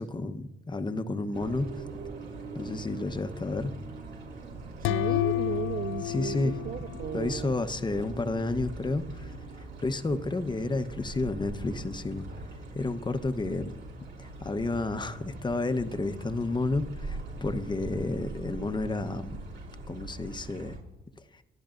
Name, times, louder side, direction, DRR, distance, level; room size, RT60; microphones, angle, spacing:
voice 1, 0.0-1.7 2.5-3.7 6.0-6.5 7.1-9.4 9.8-12.3 12.7-13.7 14.2-19.4 19.9-20.8, left 2 dB, 20° left, 0.9 m, -31 dB
sound 1, 1.3-20.8, right 2 dB, 65° right, 5.0 m, -42 dB
sound 2, 4.8-7.6, left 14 dB, 85° left, 0.4 m, -30 dB
voice 2, 4.8-7.7, right 9 dB, 45° right, 0.4 m, -35 dB
27.0 x 11.5 x 2.5 m
cardioid pair, 90°, 20 cm